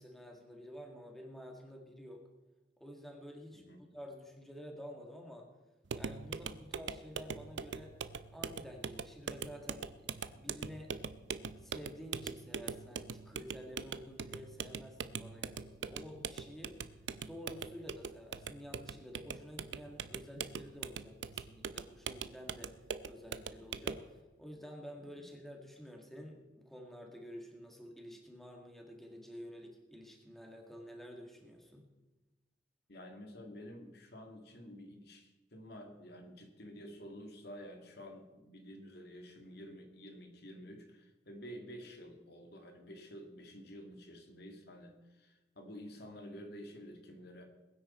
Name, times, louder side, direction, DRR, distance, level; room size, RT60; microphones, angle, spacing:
voice 1, 0.0-2.3 2.8-3.6 3.9-5.5 5.9-7.9 8.3-10.9 11.6-16.8 17.2-22.8 23.0-31.9, equal, ahead, 1 dB, 1.8 m, -50 dB
sound 1, 5.9-24.1, right 6 dB, 80° right, 0.6 m, -42 dB
voice 2, 32.9-47.4, equal, 60° left, 4 dB, 2.0 m, -50 dB
21.0 x 9.5 x 4.3 m, 1.2 s
head